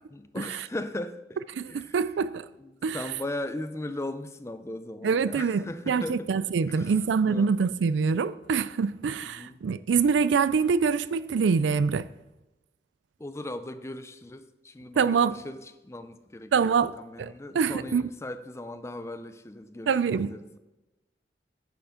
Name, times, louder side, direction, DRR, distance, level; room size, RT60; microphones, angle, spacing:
voice 1, 0.1-1.4 1.7-2.0 2.6-6.4 6.7-7.5 9.4-9.6 13.2-20.6, left 1 dB, 15° left, 0.4 m, -38 dB
voice 2, 1.6-2.4 2.8-3.0 5.0-12.1 15.0-15.4 16.5-16.9 17.2-17.3 17.5-18.0 19.9-20.3, right 5 dB, 85° right, 0.4 m, -25 dB
9.1 x 7.1 x 3.7 m
head